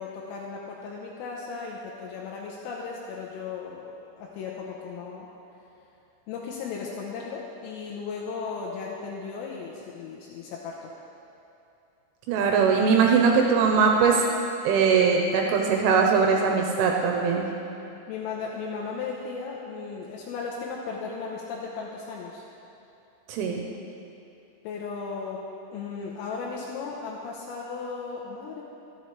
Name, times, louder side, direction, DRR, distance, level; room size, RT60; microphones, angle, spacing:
voice 1, 0.0-5.3 6.3-10.9 18.1-22.4 24.7-25.4 25.7-28.6, left 5 dB, 85° left, -3 dB, 3.6 m, -36 dB
voice 2, 12.3-14.3 14.6-17.4 23.3-23.6, right 5 dB, 80° right, 1 dB, 3.0 m, -21 dB
24.0 x 8.1 x 3.2 m, 2.7 s
omnidirectional pair, 5.9 m